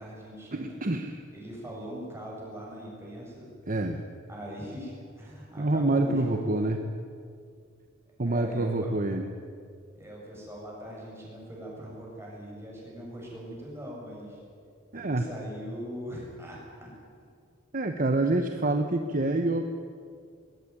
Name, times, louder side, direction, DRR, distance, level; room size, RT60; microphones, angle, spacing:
voice 1, 0.0-0.8 1.3-3.5 4.3-6.6 8.2-8.9 9.9-14.4 14.9-16.9, equal, 15° right, -3 dB, 7.7 m, -41 dB
voice 2, 0.5-1.2 3.7-4.0 5.6-6.8 8.2-9.3 14.9-15.3 17.7-19.6, right 2 dB, 40° right, 6 dB, 1.0 m, -27 dB
21.5 x 17.5 x 9.8 m, 2.3 s
head